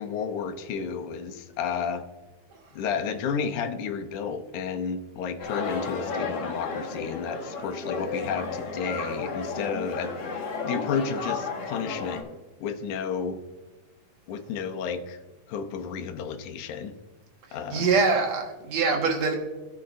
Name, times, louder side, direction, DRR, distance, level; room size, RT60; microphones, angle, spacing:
voice 1, 0.0-2.0 2.7-12.2 12.6-13.4 14.3-15.2 15.5-17.0 17.5-17.9, left 6 dB, 85° left, 6 dB, 2.3 m, -32 dB
sound 1, 5.4-12.2, left 4 dB, 55° left, 2.5 m, -33 dB
voice 2, 17.7-19.4, right 4 dB, 65° right, 2 dB, 2.6 m, -24 dB
17.5 x 6.5 x 2.6 m, 1.2 s
omnidirectional pair, 3.5 m